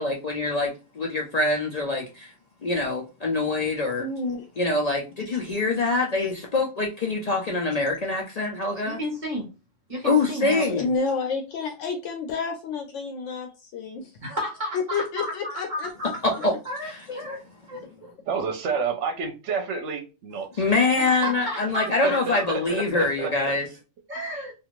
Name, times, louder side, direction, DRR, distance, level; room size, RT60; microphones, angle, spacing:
voice 1, 0.0-2.3 2.6-4.0 4.6-9.0 10.0-10.9 16.2-16.5 17.1-17.2 20.6-23.7, left 3 dB, 55° left, 0 dB, 0.4 m, -24 dB
voice 2, 4.0-4.4 5.3-5.4 10.6-14.1 14.9-15.9, left 4 dB, 80° left, 3 dB, 0.9 m, -30 dB
voice 3, 8.8-9.5 9.9-10.6 14.2-17.4 17.7-18.1 21.0-22.2 24.1-24.5, equal, 40° right, -3 dB, 1.2 m, -33 dB
voice 4, 18.3-20.7 21.9-23.3, right 5 dB, 75° right, 5 dB, 1.0 m, -29 dB
2.5 x 2.4 x 2.9 m, 0.31 s
omnidirectional pair, 1.2 m